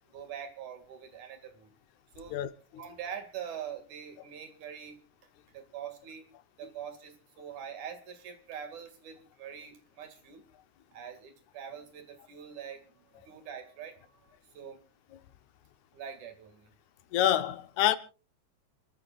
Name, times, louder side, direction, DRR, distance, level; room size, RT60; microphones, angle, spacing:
voice 1, 0.1-1.7 2.1-2.4 2.8-5.0 5.5-6.3 6.6-10.4 10.9-14.8 15.9-16.7, right 8 dB, 85° right, 3.6 m, -44 dB
voice 2, 17.1-18.0, left 12 dB, 80° left, 2.2 m, -26 dB
28.0 x 14.0 x 2.4 m
omnidirectional pair, 3.3 m